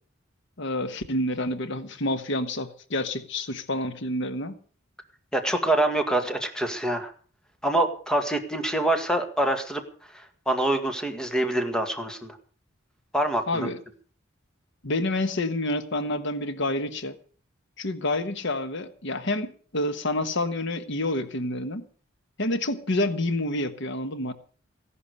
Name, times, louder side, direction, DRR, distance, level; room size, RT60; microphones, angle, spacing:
voice 1, 0.6-4.6 13.5-13.8 14.8-17.2 17.8-21.8 22.4-24.3, left 1 dB, 65° left, 1.3 m, -28 dB
voice 2, 5.3-7.1 7.6-9.8 10.1-12.4 13.1-13.7, right 1 dB, 5° left, 2.0 m, -25 dB
16.0 x 11.0 x 6.6 m
head